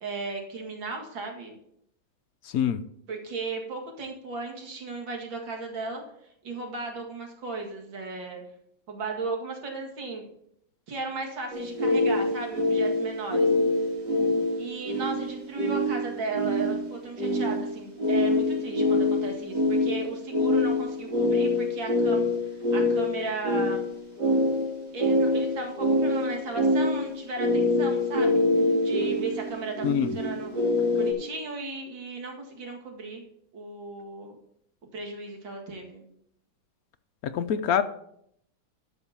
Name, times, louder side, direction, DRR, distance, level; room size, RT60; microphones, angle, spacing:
voice 1, 0.0-1.5 3.1-6.0 6.4-8.4 8.9-10.3 10.9-13.5 14.6-22.2 22.7-23.8 24.9-28.4 28.8-33.2 33.5-34.3 34.9-36.1, right 3 dB, 75° right, 1 dB, 2.7 m, -35 dB
voice 2, 2.4-2.8 29.8-30.2 37.2-37.8, left 8 dB, 70° left, 10 dB, 0.8 m, -25 dB
sound 1, 11.5-31.1, left 1 dB, 60° right, 2.7 m, -25 dB
12.5 x 4.4 x 7.1 m, 0.72 s
omnidirectional pair, 2.1 m